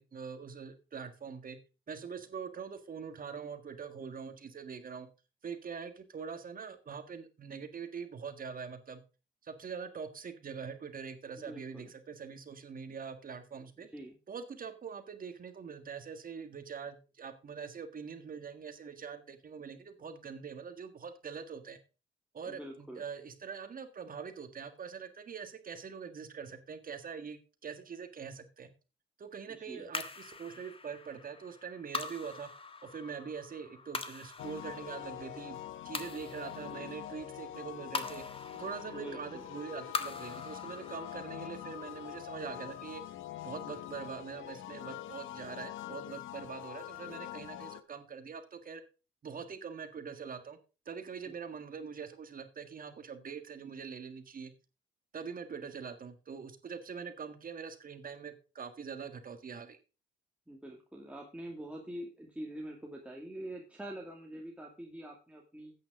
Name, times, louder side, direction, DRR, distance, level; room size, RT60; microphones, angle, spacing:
voice 1, 0.0-1.6 1.9-5.1 5.4-9.0 9.4-13.9 14.3-21.8 22.3-28.7 29.2-32.5 32.8-35.6 35.8-38.2 38.5-43.0 43.4-48.8 49.2-50.6 50.8-54.5 55.1-59.8, right 6 dB, 45° right, 8 dB, 1.7 m, -43 dB
voice 2, 11.4-11.9 13.8-14.2 22.5-23.0 29.5-29.9 38.9-39.5 51.3-51.4 60.5-65.7, right 1 dB, 5° right, -1 dB, 2.3 m, -45 dB
sound 1, 29.9-44.4, left 4 dB, 25° left, 1.5 m, -44 dB
sound 2, 34.4-47.8, left 12 dB, 80° left, 1.0 m, -44 dB
13.0 x 9.0 x 3.7 m, 0.31 s
cardioid pair, 90°, 20 cm